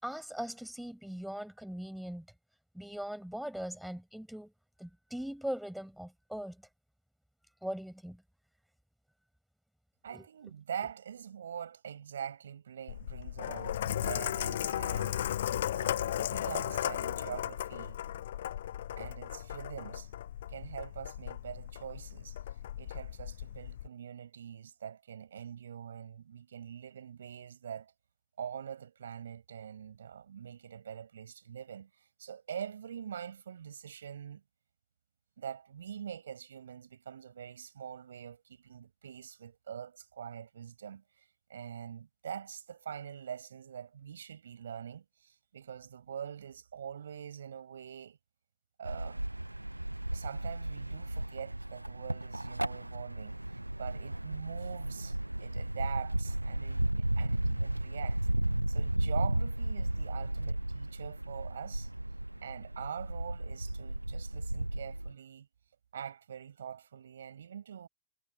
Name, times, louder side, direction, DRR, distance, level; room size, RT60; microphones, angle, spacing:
voice 1, 0.0-2.3 2.7-4.5 4.8-6.6 7.6-8.2 10.1-10.3, equal, ahead, 5.8 m, -40 dB
voice 2, 10.0-15.2 15.7-18.0 19.0-20.1 20.5-22.4 22.8-27.9 28.4-34.4 35.4-41.0 41.5-48.2 48.8-49.2 50.1-58.2 58.7-61.9 62.4-65.5 65.9-67.9, right 8 dB, 65° right, 7.1 m, -44 dB
Sink (filling or washing), 12.9-23.9, left 11 dB, 60° left, 7.4 m, -36 dB
sound 1, 48.8-65.1, right 1 dB, 85° right, 0.7 m, -34 dB
figure-of-eight pair, 90°, 0 cm